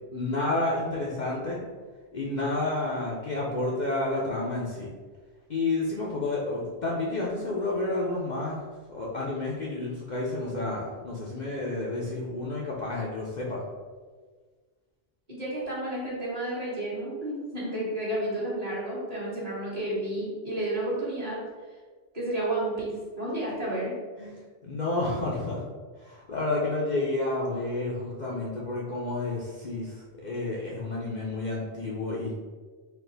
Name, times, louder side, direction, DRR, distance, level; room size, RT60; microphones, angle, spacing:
voice 1, 0.1-1.6 2.1-4.9 5.5-8.6 8.9-13.6 24.2-24.3 24.6-25.6 26.0-32.3, left 2 dB, 50° left, -4 dB, 0.6 m, -30 dB
voice 2, 15.3-21.4 22.1-24.0, right 1 dB, 35° right, -7 dB, 1.4 m, -31 dB
4.4 x 2.4 x 3.8 m, 1.5 s
omnidirectional pair, 1.1 m